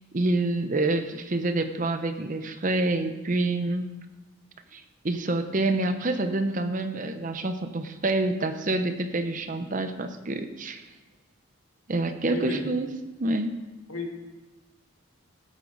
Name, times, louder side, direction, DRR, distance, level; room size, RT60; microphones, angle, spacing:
voice 1, 0.1-3.9 4.7-10.8 11.9-12.9 13.2-13.6, right 2 dB, 35° right, 8 dB, 0.7 m, -27 dB
voice 2, 12.2-12.7 13.9-14.1, left 2 dB, 75° left, 2 dB, 1.8 m, -32 dB
14.5 x 8.6 x 3.9 m, 1.1 s
head